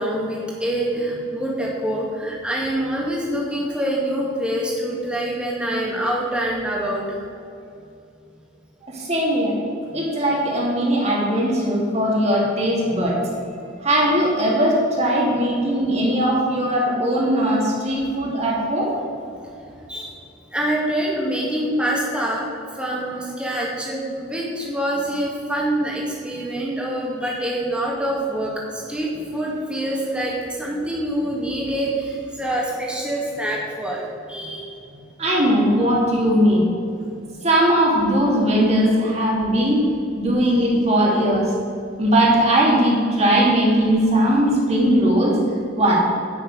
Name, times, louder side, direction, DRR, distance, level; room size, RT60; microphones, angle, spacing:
voice 1, 0.0-7.2 9.9-10.0 19.9-20.2 20.5-22.5 22.7-34.0 34.3-35.0, right 1 dB, 5° right, -3 dB, 2.2 m, -25 dB
voice 2, 8.9-9.6 9.9-13.2 13.8-18.9 35.2-36.7 37.4-39.8 40.1-41.5 42.0-45.4 45.8-46.0, equal, 35° right, -4 dB, 2.7 m, -19 dB
10.5 x 6.5 x 8.0 m, 2.6 s
head